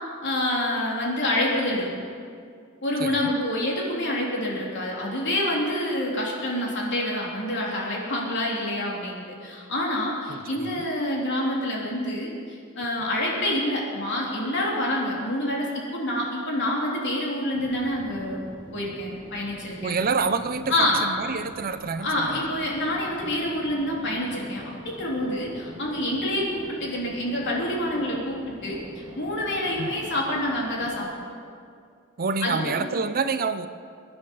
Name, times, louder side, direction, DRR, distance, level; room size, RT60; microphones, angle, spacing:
voice 1, 0.2-1.9 2.8-18.4 18.7-20.0 20.7-21.0 22.0-31.1 32.4-32.7, left 1 dB, 55° left, -3 dB, 3.6 m, -27 dB
voice 2, 3.0-3.3 10.3-10.8 19.8-22.4 29.8-30.1 32.2-33.7, right 4 dB, 45° right, 11 dB, 0.7 m, -28 dB
sound 1, 17.5-31.0, equal, 20° right, 2.0 m, -45 dB
23.0 x 9.9 x 5.6 m, 2.3 s
head